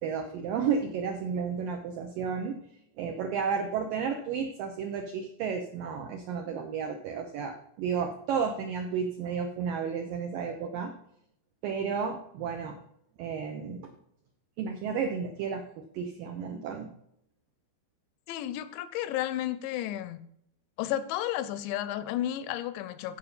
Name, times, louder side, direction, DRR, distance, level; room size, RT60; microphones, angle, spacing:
voice 1, 0.0-2.6 3.0-10.9 11.6-12.8 13.2-13.9 14.6-16.9, right 6 dB, 80° right, 4 dB, 2.0 m, -32 dB
voice 2, 18.3-20.2 20.8-23.2, left 12 dB, 85° left, 13 dB, 2.9 m, -32 dB
14.5 x 5.4 x 5.4 m, 0.72 s
omnidirectional pair, 5.3 m